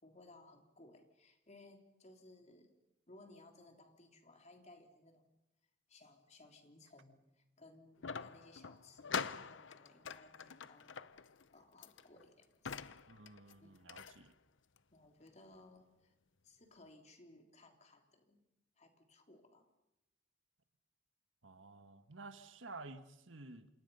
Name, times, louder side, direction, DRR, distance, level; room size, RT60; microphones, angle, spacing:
voice 1, 0.0-2.7 3.1-5.3 5.9-11.0 11.5-12.9 13.6-14.0 14.9-16.1 16.4-18.4 18.8-19.7, left 2 dB, 35° left, 4 dB, 3.5 m, -61 dB
sound 1, 8.0-14.2 14.8-14.9 15.3-15.4, left 5 dB, 70° left, 0.8 m, -44 dB
voice 2, 13.1-14.3 21.4-23.7, right 3 dB, 80° right, 9 dB, 1.7 m, -52 dB
29.0 x 27.0 x 5.7 m, 0.89 s
head